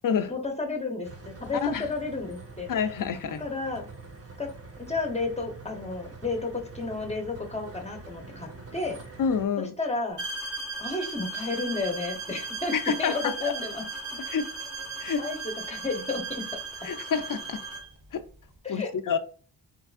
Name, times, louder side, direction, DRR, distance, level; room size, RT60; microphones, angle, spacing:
voice 1, 0.3-2.7 3.4-3.9 4.4-4.5 4.9-9.0 9.8-10.2 10.8-12.7 13.0-13.8 15.2-16.5 18.6-18.9, left 3 dB, 15° left, 0.8 m, -32 dB
sound 1, 1.0-9.5, right 3 dB, 30° right, 0.8 m, -45 dB
voice 2, 2.7-3.4 9.2-9.7 12.7-13.3 14.2-14.5 15.0-15.2 16.8-17.6 18.1-18.2 18.7-19.2, left 6 dB, 45° left, 0.5 m, -28 dB
sound 2, 10.2-17.9, right 3 dB, 85° right, 1.2 m, -36 dB
3.5 x 3.1 x 2.4 m
wide cardioid pair, 90°, 45 cm